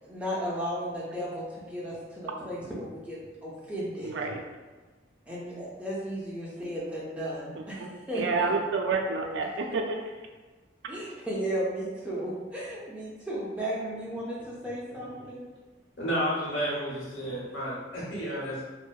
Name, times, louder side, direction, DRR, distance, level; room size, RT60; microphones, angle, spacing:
voice 1, 0.0-4.1 5.3-8.5 10.9-15.4, equal, 5° right, -7 dB, 0.4 m, -34 dB
voice 2, 4.0-4.4 7.5-10.0 15.2-15.3 17.2-17.4, right 4 dB, 75° right, 3 dB, 0.3 m, -30 dB
voice 3, 16.0-18.6, equal, 80° left, -7 dB, 0.9 m, -31 dB
2.6 x 2.1 x 2.3 m, 1.3 s
head